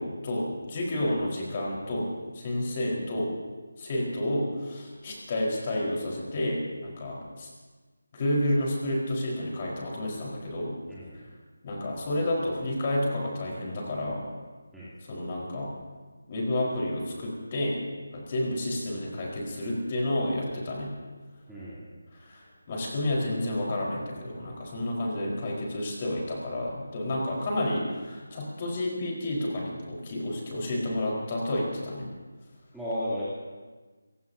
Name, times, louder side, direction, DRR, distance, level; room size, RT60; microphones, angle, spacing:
voice 1, 0.0-2.1 2.3-3.3 3.8-7.5 8.1-10.8 11.6-14.3 15.1-15.7 16.3-17.8 18.1-20.9 22.1-32.1, left 1 dB, 30° left, -3 dB, 4.6 m, -30 dB
voice 2, 10.9-11.2 14.7-14.9 21.5-21.9 32.7-33.2, equal, ahead, -14 dB, 3.1 m, -34 dB
29.5 x 17.0 x 2.8 m, 1.3 s
figure-of-eight pair, 160°, 0 cm